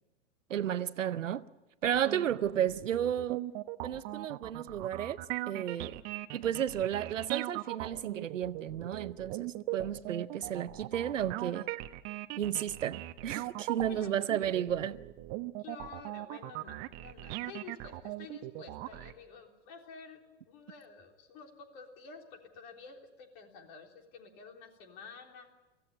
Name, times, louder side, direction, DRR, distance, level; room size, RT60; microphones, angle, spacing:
voice 1, 0.5-1.4 1.8-3.4 3.8-6.0 6.3-11.7 12.4-15.0, right 10 dB, 90° right, 0.8 m, -33 dB
voice 2, 1.8-2.2 13.8-14.1 15.6-25.5, left 5 dB, 55° left, 3.7 m, -50 dB
sound 1, 1.8-19.1, right 18 dB, 45° right, 1.2 m, -40 dB
24.0 x 15.5 x 8.9 m
hypercardioid pair, 110°, 37 cm